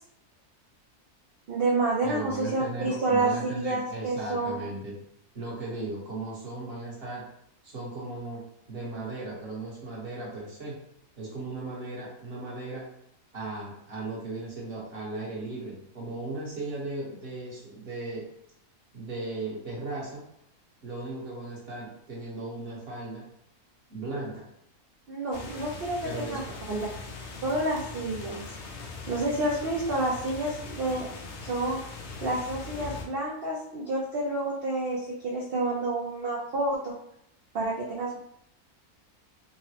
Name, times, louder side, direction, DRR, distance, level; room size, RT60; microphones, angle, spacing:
voice 1, 1.5-4.7 25.1-26.4 26.7-26.9 27.4-28.5 29.1-31.1 31.4-31.8 32.2-36.9 37.5-38.2, right 2 dB, 75° right, -4 dB, 0.5 m, -29 dB
voice 2, 2.0-4.9 5.3-7.2 7.6-8.4 8.7-10.7 11.2-12.8 13.3-18.2 18.9-20.2 20.8-23.2 23.9-24.5 26.0-26.6, right 2 dB, 45° right, -4 dB, 1.1 m, -36 dB
sound 1, 25.3-33.1, left 3 dB, 65° left, 0.7 m, -41 dB
3.8 x 2.0 x 2.7 m, 0.74 s
omnidirectional pair, 1.6 m